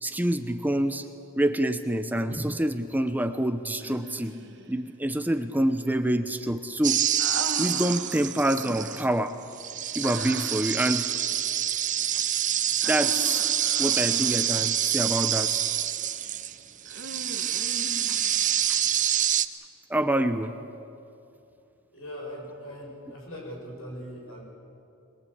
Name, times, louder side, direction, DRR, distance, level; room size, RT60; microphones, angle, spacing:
voice 1, 0.0-1.1 1.4-4.3 4.7-7.0 7.6-9.3 9.9-11.1 12.8-13.4 13.8-15.6 19.9-20.5, right 1 dB, 10° right, 9 dB, 0.8 m, -26 dB
Human voice, 3.8-4.7 7.2-8.5 10.0-10.8 12.8-14.6 16.9-18.5, right 2 dB, 55° right, 1.8 m, -39 dB
sound 1, 6.8-9.0 9.5-16.5 16.9-19.5, right 10 dB, 35° right, 0.8 m, -27 dB
voice 2, 21.8-24.4, equal, 75° left, -1 dB, 7.5 m, -40 dB
23.5 x 21.5 x 8.7 m, 2.7 s
head